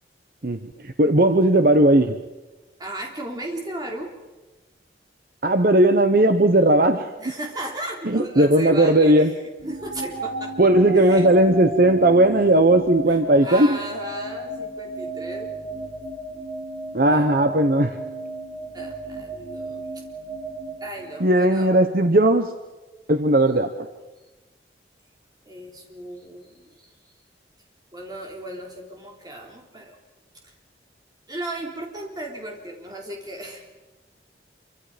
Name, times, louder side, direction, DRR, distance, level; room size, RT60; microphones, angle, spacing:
voice 1, 0.4-2.2 5.4-7.1 8.0-9.3 10.6-13.8 16.9-18.0 21.2-22.5 23.1-23.9, right 1 dB, 50° right, 7 dB, 0.9 m, -17 dB
voice 2, 2.8-4.2 7.2-9.3 9.7-11.3 13.1-15.6 17.1-17.3 18.7-20.0 20.8-21.7 25.5-27.1 27.9-30.0 30.4-30.5 31.3-33.6, right 1 dB, 20° right, 0 dB, 3.5 m, -36 dB
sound 1, 9.6-21.7, right 2 dB, 75° right, 6.3 m, -34 dB
27.0 x 24.5 x 5.1 m, 1.1 s
head